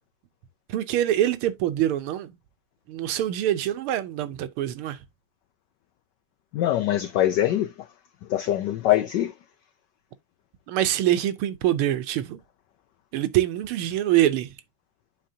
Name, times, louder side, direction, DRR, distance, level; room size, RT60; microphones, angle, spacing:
voice 1, 0.7-2.4 2.9-5.0 10.7-12.4 13.1-14.5, right 12 dB, 80° right, 1.6 m, -24 dB
voice 2, 6.5-7.7 8.3-9.3, left 13 dB, 85° left, 0.9 m, -23 dB
10.0 x 4.1 x 2.7 m
omnidirectional pair, 2.4 m